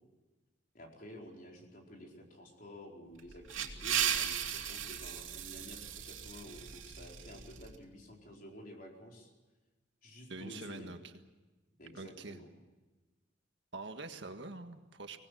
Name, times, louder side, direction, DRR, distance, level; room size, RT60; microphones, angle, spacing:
voice 1, 0.7-9.3 10.0-10.9 11.8-12.5, left 1 dB, 45° left, 0 dB, 4.6 m, -51 dB
sound 1, 3.2-7.7, right 9 dB, 90° right, 2.7 m, -37 dB
voice 2, 10.3-11.1 11.9-12.4 13.7-15.2, right 3 dB, 65° right, 6 dB, 1.7 m, -45 dB
25.0 x 19.0 x 7.8 m, 1.2 s
head